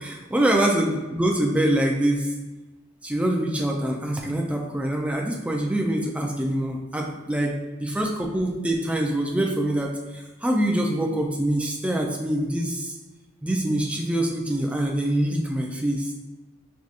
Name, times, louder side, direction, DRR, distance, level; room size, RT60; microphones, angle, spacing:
voice 1, 0.0-2.3 3.0-13.0 13.4-16.1, right 1 dB, 5° right, 0 dB, 0.4 m, -25 dB
4.7 x 2.7 x 2.5 m, 1.2 s
head